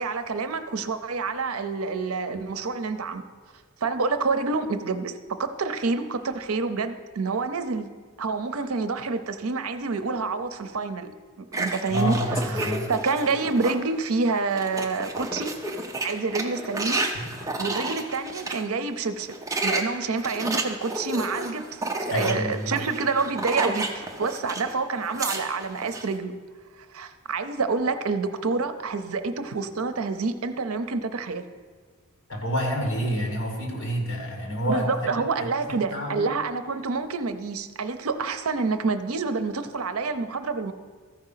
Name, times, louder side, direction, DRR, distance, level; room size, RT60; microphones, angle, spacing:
voice 1, 0.0-3.2 3.8-7.9 8.2-11.1 11.4-12.2 12.5-15.6 16.0-17.1 17.6-19.4 19.6-26.4 26.9-31.4 34.6-40.7, right 4 dB, 80° right, 10 dB, 0.6 m, -28 dB
sound 1, 11.5-13.8 14.2-18.6 19.2-24.7 25.0-26.1, right 2 dB, 15° right, 0.6 m, -31 dB
voice 2, 11.9-12.9 22.1-22.9 32.3-36.3, equal, 60° left, 1 dB, 2.1 m, -28 dB
14.0 x 5.0 x 5.7 m, 1.5 s
head